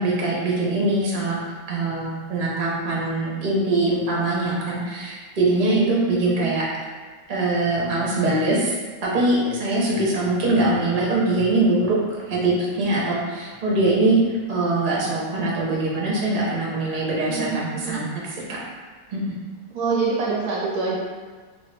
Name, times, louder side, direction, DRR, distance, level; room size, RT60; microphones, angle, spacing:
voice 1, 0.0-1.4 1.7-6.6 7.3-8.7 9.0-12.0 12.3-14.2 14.5-18.1 19.1-19.3, right 2 dB, 55° right, -5 dB, 0.5 m, -22 dB
voice 2, 5.6-6.5 17.3-18.0 19.7-21.0, right 4 dB, 70° right, -4 dB, 0.9 m, -26 dB
2.9 x 2.7 x 3.2 m, 1.4 s
omnidirectional pair, 2.0 m